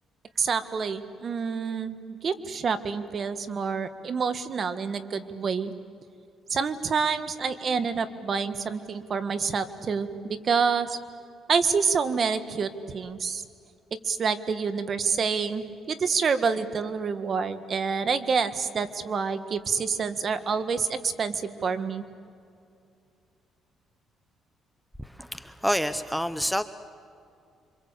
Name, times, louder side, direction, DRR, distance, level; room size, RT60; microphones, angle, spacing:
voice 1, 0.4-5.7 6.5-11.0 11.5-13.4 14.0-22.0, right 5 dB, 45° right, 10 dB, 1.6 m, -27 dB
voice 2, 25.0-26.6, equal, ahead, 11 dB, 0.9 m, -28 dB
27.0 x 25.5 x 8.3 m, 2.4 s
cardioid pair, 95°, 0 cm